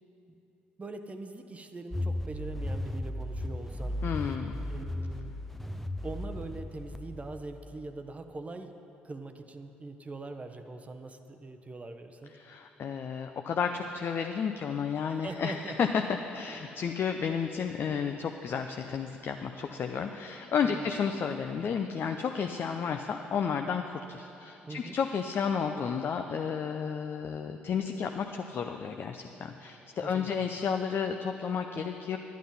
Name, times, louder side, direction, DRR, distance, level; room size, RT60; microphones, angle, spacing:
voice 1, 0.8-4.0 4.7-5.3 6.0-8.8 9.0-12.3 15.1-15.8 20.6-20.9 24.6-25.0 30.0-30.5, right 2 dB, 25° right, 7 dB, 0.8 m, -42 dB
sound 1, 1.9-7.8, left 1 dB, 5° left, 0.7 m, -36 dB
voice 2, 4.0-4.6 12.4-16.0 16.3-32.2, left 6 dB, 45° left, 5 dB, 0.5 m, -32 dB
11.5 x 9.2 x 5.4 m, 3.0 s
figure-of-eight pair, 45°, 5 cm